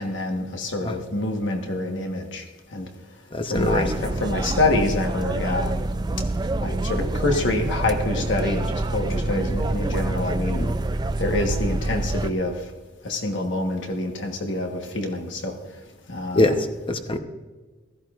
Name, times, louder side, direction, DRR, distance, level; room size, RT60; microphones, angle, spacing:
voice 1, 0.0-2.4 2.7-2.9 3.5-5.8 6.6-10.6 11.2-12.5 13.0-15.5 16.1-16.6, left 2 dB, 65° left, 3 dB, 1.3 m, -26 dB
voice 2, 3.3-3.8 10.6-10.7 16.3-16.5 16.9-17.2, left 2 dB, 25° left, 7 dB, 0.8 m, -22 dB
sound 1, 3.6-12.3, right 2 dB, 20° right, 0.3 m, -26 dB
15.5 x 14.0 x 2.5 m, 1.3 s
head